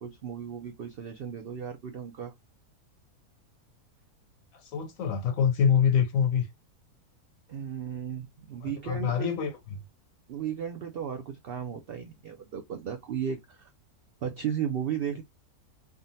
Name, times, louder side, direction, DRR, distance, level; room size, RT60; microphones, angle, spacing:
voice 1, 0.0-2.3 7.5-9.5 10.3-13.7 14.2-15.2, right 8 dB, 85° right, 0.5 m, -35 dB
voice 2, 4.5-6.5 8.6-9.8, left 7 dB, 70° left, 0.9 m, -26 dB
3.6 x 2.2 x 2.6 m
omnidirectional pair, 1.6 m